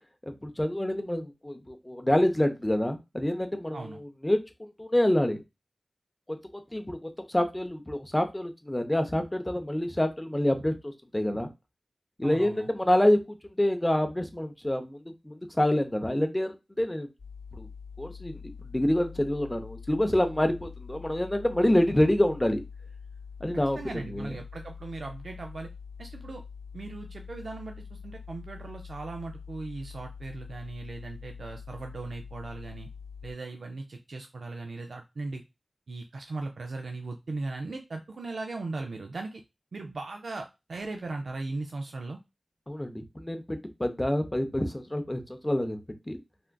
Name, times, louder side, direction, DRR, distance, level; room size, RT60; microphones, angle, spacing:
voice 1, 0.2-5.4 6.3-11.5 12.2-17.1 17.6-17.7 18.0-22.6 23.4-23.8 24.1-24.3 42.7-45.8 46.1-46.2, left 1 dB, 15° left, 6 dB, 0.5 m, -27 dB
voice 2, 12.2-12.7 23.8-25.7 26.0-26.4 26.7-32.9 33.2-35.4 35.9-39.4 39.7-42.2, right 3 dB, 85° right, 4 dB, 0.3 m, -38 dB
sound 1, 17.2-33.3, left 6 dB, 85° left, 0.8 m, -44 dB
3.4 x 2.4 x 2.2 m, 0.24 s
wide cardioid pair, 60°, 0 cm